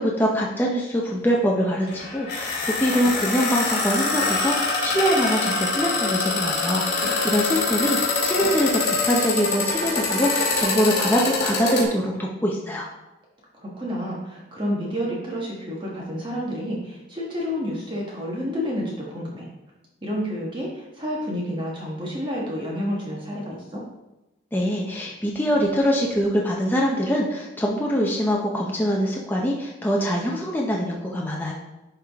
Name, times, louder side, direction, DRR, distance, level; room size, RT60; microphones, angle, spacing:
voice 1, 0.0-12.9 24.5-31.5, equal, 10° left, -2 dB, 0.7 m, -24 dB
sound 1, 1.9-11.8, left 3 dB, 50° left, 2.3 m, -24 dB
voice 2, 13.6-19.5 20.0-23.8, equal, 25° right, -4 dB, 1.3 m, -29 dB
11.0 x 3.7 x 3.5 m, 0.97 s
head